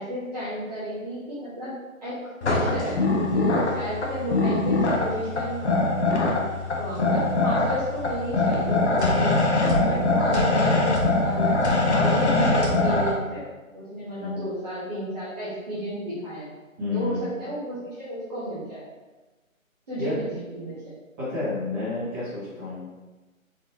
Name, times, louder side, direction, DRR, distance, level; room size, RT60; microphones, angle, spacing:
voice 1, 0.0-1.7 2.0-3.0 3.3-5.8 6.8-9.4 9.8-13.4 13.7-16.5 16.9-18.8 19.9-20.9, right 1 dB, 30° right, -12 dB, 1.2 m, -32 dB
sound 1, 2.4-13.1, left 2 dB, 55° left, 0.8 m, -23 dB
voice 2, 16.8-17.3 20.0-20.1 21.2-22.9, left 3 dB, 10° right, -15 dB, 1.4 m, -30 dB
3.9 x 3.6 x 2.7 m, 1.2 s
figure-of-eight pair, 160°, 41 cm